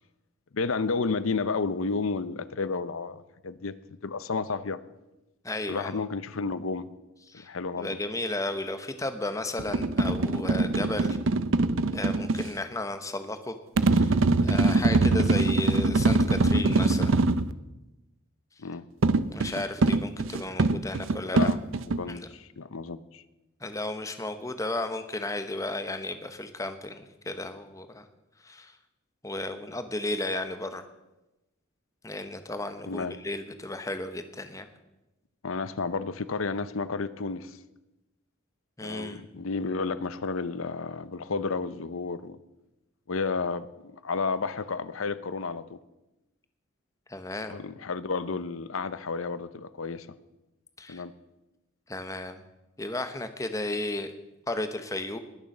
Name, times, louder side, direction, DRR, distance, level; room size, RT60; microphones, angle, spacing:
voice 1, 0.5-4.8 5.7-6.9 7.5-8.0 18.6-18.8 21.3-21.6 22.0-23.2 32.9-33.1 35.4-37.6 38.8-42.4 43.1-45.8 47.5-50.1 50.9-51.1, left 4 dB, 80° left, 15 dB, 0.7 m, -31 dB
voice 2, 5.4-6.0 7.3-7.5 7.8-11.2 11.9-13.6 13.8-14.2 14.4-17.2 19.3-21.5 22.1-22.3 23.6-28.0 28.4-28.8 29.2-30.9 32.0-34.7 38.8-39.2 47.1-47.6 50.8-51.0 51.9-52.4 52.8-54.1 54.5-55.2, left 2 dB, 15° left, 9 dB, 1.0 m, -34 dB
sound 1, 9.6-12.5 13.8-17.5 19.0-22.0, right 3 dB, 70° right, 0.6 m, -23 dB
20.5 x 7.1 x 6.6 m, 1.0 s
head